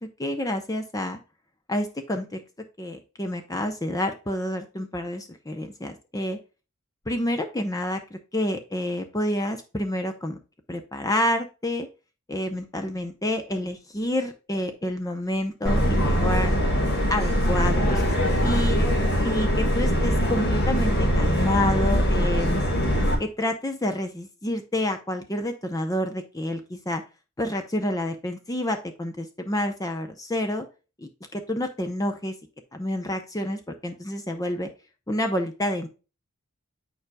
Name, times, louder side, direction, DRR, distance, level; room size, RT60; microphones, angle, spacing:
voice 1, 0.2-1.2 1.7-2.4 2.8-6.4 7.1-10.4 10.7-11.9 12.3-16.5 17.1-18.0 18.4-18.8 19.2-22.6 23.2-27.0 27.4-30.6 31.0-32.3 32.7-34.7 35.1-35.9, left 1 dB, 15° left, 6 dB, 0.6 m, -28 dB
Subway metro underground, 15.7-23.2, equal, 50° left, 1.6 m, -22 dB
9.2 x 4.7 x 2.2 m, 0.32 s
head